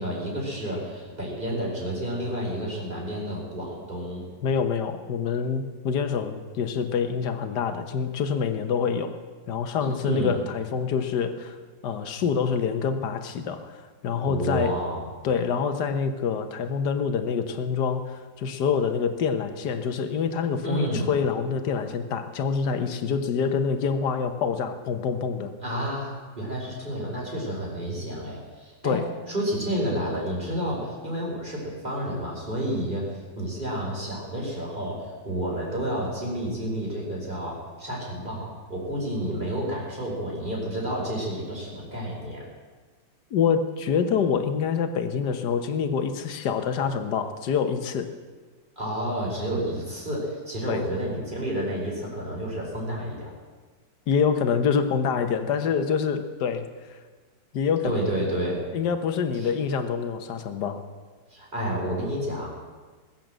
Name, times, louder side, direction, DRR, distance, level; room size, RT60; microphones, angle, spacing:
voice 1, 0.0-4.2 10.0-10.4 14.2-15.1 20.6-21.1 25.6-29.0 29.3-42.5 48.8-53.3 57.8-58.6 59.4-59.5 61.3-62.5, equal, 25° right, -3 dB, 4.9 m, -30 dB
voice 2, 4.4-9.1 9.5-11.6 11.8-14.7 15.2-25.5 28.8-29.1 43.3-48.1 50.6-50.8 54.1-57.0 57.5-58.0 58.7-60.8, left 6 dB, 65° left, 7 dB, 1.7 m, -26 dB
20.5 x 7.6 x 7.6 m, 1.4 s
omnidirectional pair, 2.0 m